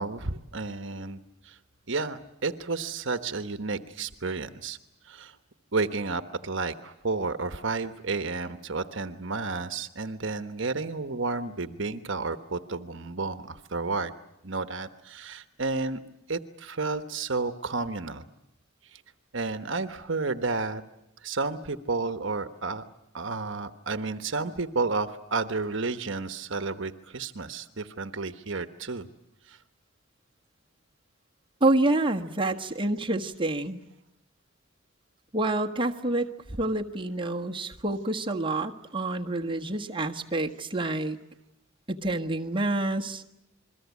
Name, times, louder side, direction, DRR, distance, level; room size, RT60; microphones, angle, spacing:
voice 1, 0.0-1.6 1.9-4.8 5.0-5.4 5.7-14.1 14.4-16.0 16.3-18.2 18.9-19.0 19.3-20.8 21.2-22.8 23.1-29.1 29.5-29.6, right 3 dB, 60° right, 10 dB, 1.2 m, -31 dB
voice 2, 31.6-33.8 35.3-41.2 41.9-43.2, right 2 dB, 25° right, 1 dB, 1.5 m, -28 dB
28.5 x 22.0 x 8.4 m, 0.84 s
head